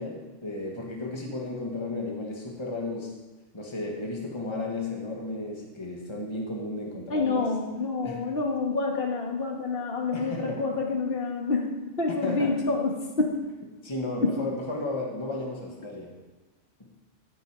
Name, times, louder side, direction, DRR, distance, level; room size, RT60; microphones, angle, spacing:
voice 1, 0.0-3.1 3.5-7.5 8.0-8.2 10.1-10.6 12.2-12.6 13.8-16.1, left 2 dB, 25° left, -1 dB, 1.9 m, -34 dB
voice 2, 7.1-11.7 12.0-12.9 13.2-13.3, left 3 dB, 50° left, 1 dB, 1.8 m, -27 dB
15.5 x 8.1 x 5.1 m, 1.1 s
omnidirectional pair, 1.2 m